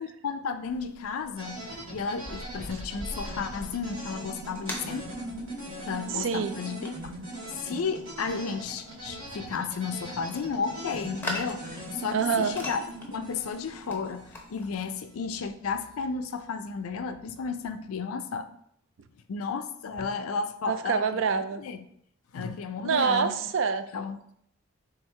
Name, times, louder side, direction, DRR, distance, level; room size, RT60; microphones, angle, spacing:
voice 1, 0.0-1.6 1.9-5.2 5.8-7.0 7.6-12.8 13.1-18.5 19.3-21.0 21.6-21.8 22.3-23.4 23.9-24.3, left 5 dB, 80° left, 0.4 m, -33 dB
sound 1, 0.7-14.8, left 1 dB, 10° left, 0.6 m, -43 dB
sound 2, 1.4-15.3, right 1 dB, 80° right, 1.8 m, -41 dB
voice 2, 6.1-6.6 12.1-12.5 20.7-21.6 22.8-23.9, right 6 dB, 60° right, 0.3 m, -26 dB
4.5 x 3.7 x 3.2 m
head